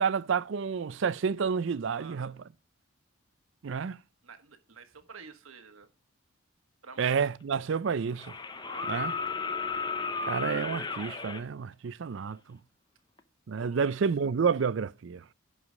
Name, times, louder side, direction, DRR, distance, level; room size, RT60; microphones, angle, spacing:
voice 1, 0.0-2.4 3.6-4.0 7.0-8.4 8.9-9.1 10.3-12.6 13.5-15.2, right 6 dB, 65° right, 0.4 m, -29 dB
voice 2, 1.9-2.3 4.2-5.9 6.8-7.2 8.7-9.1 13.6-14.0, right 5 dB, 85° right, 1.4 m, -50 dB
sound 1, 8.2-11.4 13.2-13.3, left 4 dB, 20° left, 0.7 m, -34 dB
10.5 x 4.9 x 5.0 m
head